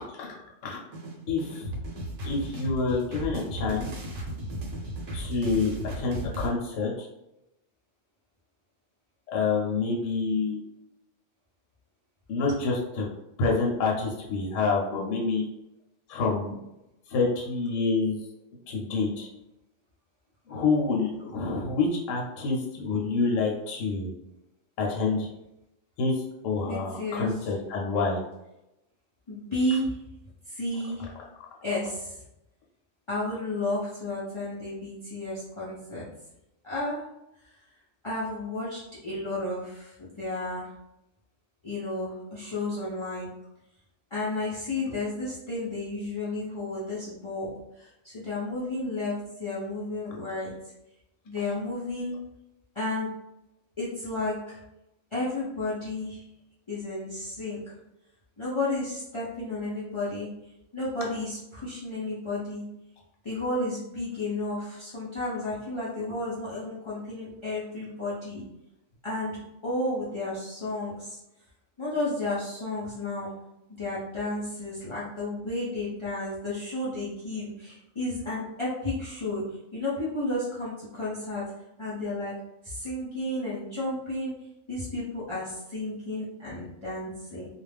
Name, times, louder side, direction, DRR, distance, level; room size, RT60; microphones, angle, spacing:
voice 1, 0.1-0.8 1.3-1.6 2.2-3.9 5.1-7.1 9.3-10.6 12.3-13.1 13.4-15.4 16.1-16.6 17.1-18.2 18.7-19.3 20.5-24.1 24.8-25.3 26.0-28.2, left 4 dB, 75° left, -2 dB, 1.0 m, -27 dB
sound 1, 0.9-6.5, right 1 dB, 70° right, 1.0 m, -35 dB
voice 2, 26.6-27.3 29.3-30.0 30.5-31.0 31.6-32.2 33.1-36.0 36.6-37.0 37.4-37.5 38.0-40.7 41.6-43.3 44.1-50.5 51.3-52.2 52.7-53.1 53.8-54.6 55.1-56.2 56.7-57.6 58.4-60.3 60.7-62.6 63.2-68.4 69.0-71.2 71.8-73.3 73.8-79.4 79.7-81.4 81.8-82.3 82.6-84.3 84.7-87.5, left 2 dB, 45° left, -9 dB, 0.3 m, -32 dB
2.4 x 2.1 x 3.3 m, 0.89 s
omnidirectional pair, 1.4 m